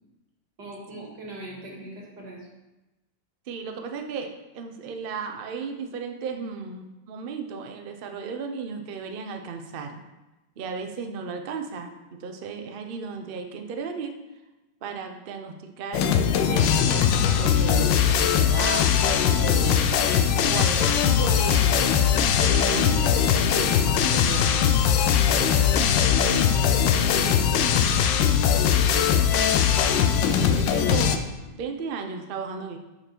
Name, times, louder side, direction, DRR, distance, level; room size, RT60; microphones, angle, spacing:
voice 1, 0.6-2.5 26.2-28.5 28.9-29.5, right 1 dB, 65° right, -2 dB, 2.5 m, -41 dB
voice 2, 3.5-10.0 10.6-14.1 14.8-18.9 19.4-20.0 20.4-21.9 22.2-24.7 30.3-32.8, right 5 dB, 85° right, 4 dB, 0.4 m, -35 dB
sound 1, 15.9-31.2, left 8 dB, 90° left, 1.3 m, -21 dB
6.6 x 5.8 x 4.5 m, 1.0 s
omnidirectional pair, 2.0 m